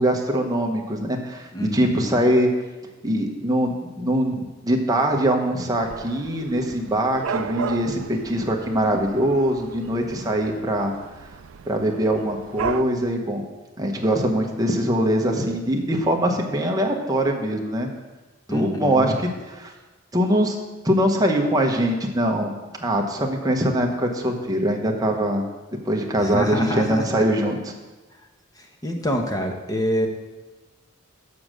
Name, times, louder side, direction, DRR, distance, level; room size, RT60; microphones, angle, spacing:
voice 1, 0.0-2.5 3.0-10.9 11.6-13.4 13.8-17.9 18.5-19.7 20.1-20.6 20.8-22.5 22.8-25.5 25.8-27.7, right 1 dB, 20° right, 1 dB, 1.0 m, -22 dB
voice 2, 1.5-2.3 18.5-19.1 26.2-27.2 28.6-30.1, equal, 20° left, 3 dB, 0.9 m, -27 dB
Dog / Cat, 5.8-12.8, right 6 dB, 75° right, 0.4 m, -35 dB
7.0 x 6.5 x 6.2 m, 1.2 s
head